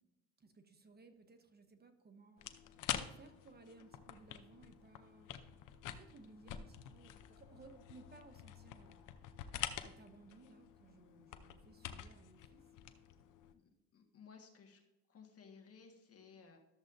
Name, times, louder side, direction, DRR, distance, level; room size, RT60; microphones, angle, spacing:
voice 1, 0.4-2.5 3.1-5.4 5.9-9.1 9.8-12.6, right 3 dB, 35° right, 7 dB, 1.0 m, -61 dB
sound 1, 2.4-13.5, left 11 dB, 85° left, 0.7 m, -47 dB
voice 2, 13.5-14.8 15.1-16.6, left 6 dB, 50° left, 3 dB, 1.7 m, -59 dB
13.0 x 7.1 x 2.6 m, 0.98 s
cardioid pair, 90°, 30 cm